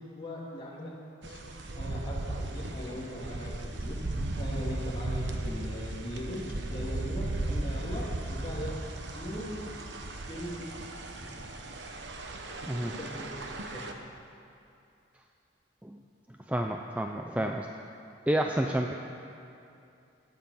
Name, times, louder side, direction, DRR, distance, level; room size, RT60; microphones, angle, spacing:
voice 1, 0.2-0.9 1.2-1.4 1.7-8.8 9.1-9.6 10.2-10.7 11.1-11.5 12.9-13.8, equal, 25° left, -5 dB, 2.5 m, -40 dB
sound 1, 1.2-13.9, right 2 dB, 65° right, 1.0 m, -36 dB
voice 2, 16.5-17.7 18.3-18.9, right 1 dB, 5° right, 3 dB, 0.4 m, -29 dB
18.0 x 9.3 x 5.6 m, 2.6 s
head